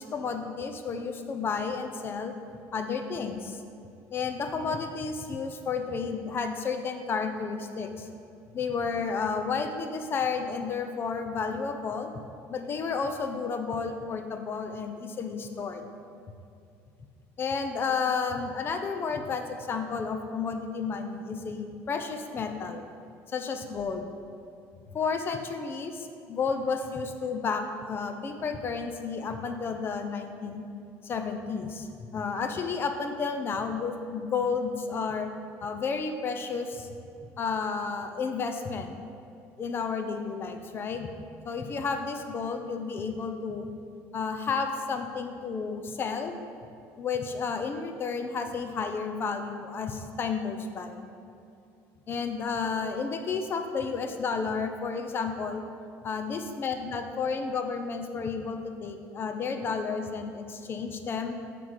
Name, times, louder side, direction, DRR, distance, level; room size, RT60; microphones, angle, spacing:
voice 1, 0.0-2.3 2.7-3.6 4.1-8.1 8.5-12.1 12.5-15.9 17.4-22.9 23.3-24.1 24.9-30.6 31.0-35.3 35.6-36.9 37.2-38.9 39.6-41.1 41.4-43.7 44.1-46.3 47.0-51.1 52.1-55.6 56.0-61.3, left 5 dB, 35° left, 6 dB, 0.7 m, -32 dB
6.9 x 5.7 x 4.8 m, 2.6 s
cardioid pair, 110°, 6 cm